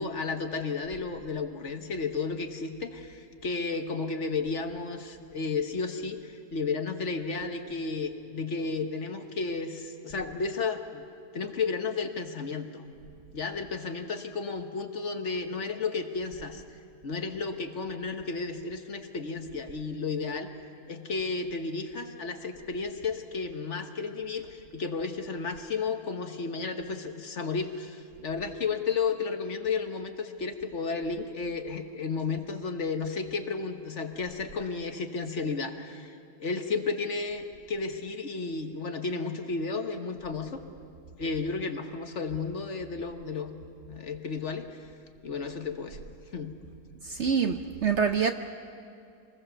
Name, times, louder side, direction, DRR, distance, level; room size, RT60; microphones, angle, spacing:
voice 1, 0.0-11.0 11.3-12.8 13.3-16.6 17.0-20.5 20.9-36.1 36.4-40.6 41.2-43.5 43.9-44.8 45.2-46.0 46.3-46.6, left 4 dB, 50° left, 6 dB, 1.4 m, -33 dB
voice 2, 47.0-48.3, right 6 dB, 60° right, 7 dB, 0.8 m, -26 dB
25.5 x 20.5 x 6.8 m, 2.5 s
omnidirectional pair, 1.7 m